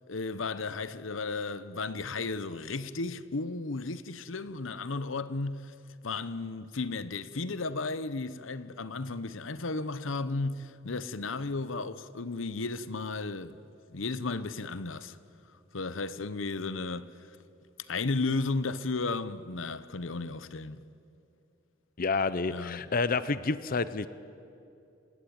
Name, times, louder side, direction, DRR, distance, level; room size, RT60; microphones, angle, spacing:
voice 1, 0.1-5.7 6.0-13.6 13.9-15.2 15.7-17.1 17.9-20.8 22.5-22.9, left 3 dB, 90° left, 0.9 m, -34 dB
voice 2, 22.0-24.1, left 4 dB, 45° left, 0.7 m, -29 dB
28.5 x 18.0 x 8.7 m
head